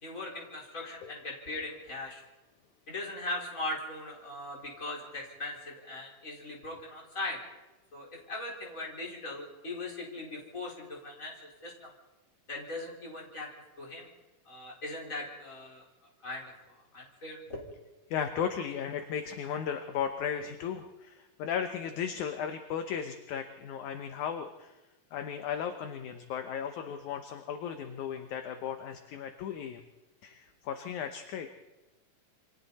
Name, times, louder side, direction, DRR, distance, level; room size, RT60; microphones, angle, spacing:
voice 1, 0.0-2.2 2.9-7.4 7.9-11.4 11.6-11.9 12.5-13.5 13.8-14.1 14.5-15.8 16.2-17.6, left 2 dB, 20° left, -2 dB, 4.8 m, -39 dB
voice 2, 18.1-24.7 25.1-29.8 30.2-31.5, left 8 dB, 70° left, 6 dB, 2.2 m, -35 dB
28.5 x 24.5 x 4.2 m, 1.1 s
omnidirectional pair, 4.0 m